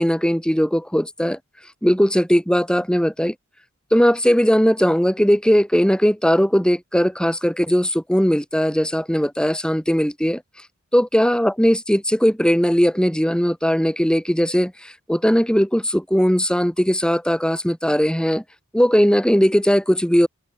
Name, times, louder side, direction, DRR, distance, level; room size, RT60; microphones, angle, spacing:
voice 1, 0.0-1.4 1.8-3.3 3.9-10.4 10.9-18.4 18.7-20.3, equal, 5° left, 4.5 m, -18 dB
open air
head